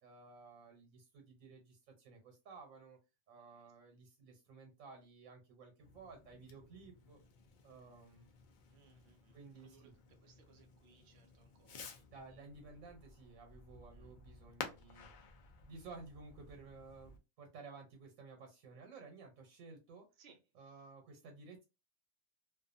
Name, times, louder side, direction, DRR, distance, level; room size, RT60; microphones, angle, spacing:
voice 1, 0.0-3.0 3.3-7.2 7.6-8.3 9.3-9.9 12.1-15.1 15.6-20.0 20.5-21.6, right 4 dB, 80° right, 1.2 m, -55 dB
Fireworks, 5.8-17.2, left 5 dB, 75° left, 0.4 m, -54 dB
voice 2, 8.7-12.4 13.8-14.5 20.2-20.8, right 5 dB, 65° right, 0.7 m, -68 dB
2.5 x 2.4 x 2.5 m
omnidirectional pair, 1.4 m